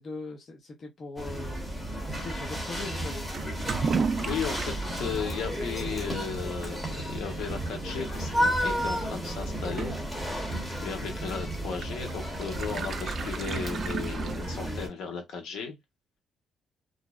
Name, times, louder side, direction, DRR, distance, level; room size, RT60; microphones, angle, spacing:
voice 1, 0.0-1.6 2.1-3.3 10.9-11.2, left 3 dB, 50° left, 0.6 m, -40 dB
sound 1, 1.2-14.9, equal, 10° left, 1.0 m, -33 dB
Toilet flush / Liquid, 3.3-15.0, right 5 dB, 50° right, 0.3 m, -36 dB
voice 2, 4.2-15.8, left 6 dB, 85° left, 0.9 m, -36 dB
2.6 x 2.0 x 2.3 m
cardioid pair, 90°, 0 cm